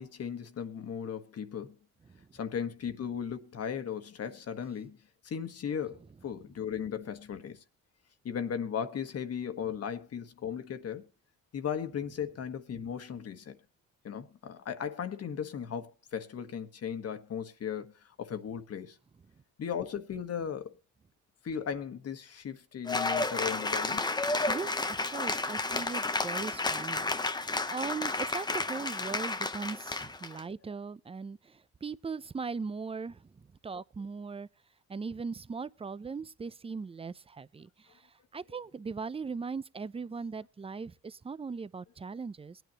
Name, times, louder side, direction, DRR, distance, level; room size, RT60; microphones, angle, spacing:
voice 1, 0.0-1.7 2.3-5.0 5.2-7.6 8.2-11.1 11.5-13.6 14.0-19.0 19.6-20.8 21.4-24.0, left 7 dB, 55° left, 1.4 m, -37 dB
Cheering / Applause, 22.9-30.4, left 3 dB, 15° left, 0.7 m, -32 dB
voice 2, 24.5-34.5 34.9-42.6, right 5 dB, 20° right, 0.5 m, -39 dB
22.5 x 9.2 x 2.9 m
cardioid pair, 90°, 30 cm